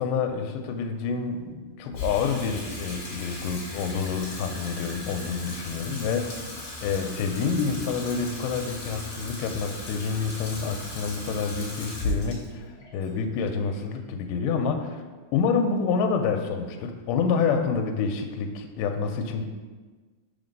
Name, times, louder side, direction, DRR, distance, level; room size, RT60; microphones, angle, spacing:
voice 1, 0.0-6.4 6.8-12.6 12.9-15.0 15.3-19.5, left 5 dB, 80° left, 4 dB, 2.1 m, -28 dB
Water tap faucet / Sink (filling or washing), 1.9-14.3, left 1 dB, 45° left, 1.5 m, -37 dB
5.9 x 3.8 x 5.2 m, 1.3 s
omnidirectional pair, 4.0 m